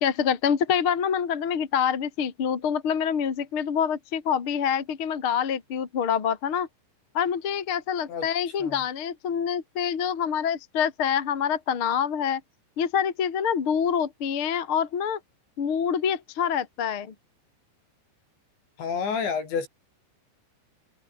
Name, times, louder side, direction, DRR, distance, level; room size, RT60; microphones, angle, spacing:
voice 1, 0.0-6.7 7.1-12.4 12.8-15.2 15.6-17.1, left 8 dB, 40° left, 1.9 m, -26 dB
voice 2, 18.8-19.7, left 6 dB, 60° left, 7.6 m, -29 dB
omnidirectional pair, 5.8 m